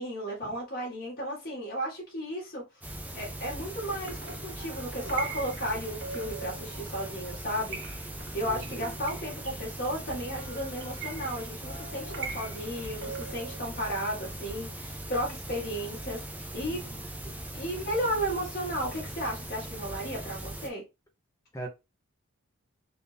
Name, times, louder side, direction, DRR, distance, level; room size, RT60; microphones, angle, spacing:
voice 1, 0.0-2.9 3.1-7.8 8.3-16.8 17.5-20.8, equal, 45° left, 1.9 m, -34 dB
sound 1, 2.8-20.7, right 1 dB, 5° right, 0.5 m, -40 dB
sound 2, 3.8-13.6, right 4 dB, 55° right, 0.8 m, -43 dB
voice 2, 8.4-9.0 16.6-17.0 21.5-21.7, right 1 dB, 15° left, 0.8 m, -41 dB
4.4 x 2.6 x 3.4 m
head